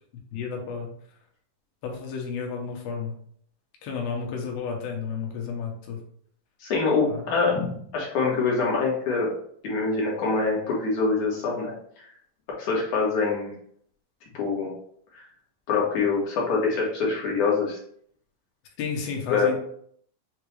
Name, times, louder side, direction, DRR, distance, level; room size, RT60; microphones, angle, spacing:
voice 1, 0.3-0.9 1.8-3.2 3.8-6.0 7.1-7.3 18.8-19.6, left 5 dB, 80° left, 1 dB, 2.8 m, -32 dB
voice 2, 6.6-9.3 9.6-12.1 12.6-13.5 14.3-14.7 15.7-17.8 19.3-19.6, left 4 dB, 65° left, -3 dB, 2.3 m, -25 dB
7.0 x 2.3 x 3.1 m, 0.62 s
omnidirectional pair, 4.2 m